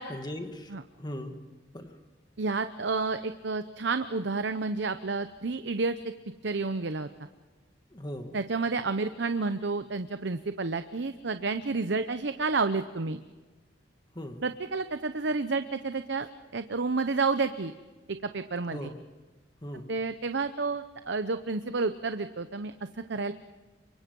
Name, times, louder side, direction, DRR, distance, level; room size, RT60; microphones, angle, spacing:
voice 1, 0.1-1.4 1.7-2.0 7.9-8.4 14.1-14.4 18.7-19.0 19.6-19.9, left 1 dB, 25° left, 6 dB, 2.1 m, -39 dB
voice 2, 2.4-7.1 8.3-13.2 14.4-16.3 16.5-17.7 18.1-18.9 19.9-23.3, right 4 dB, 65° right, 10 dB, 0.8 m, -30 dB
28.0 x 24.5 x 5.4 m, 1.3 s
head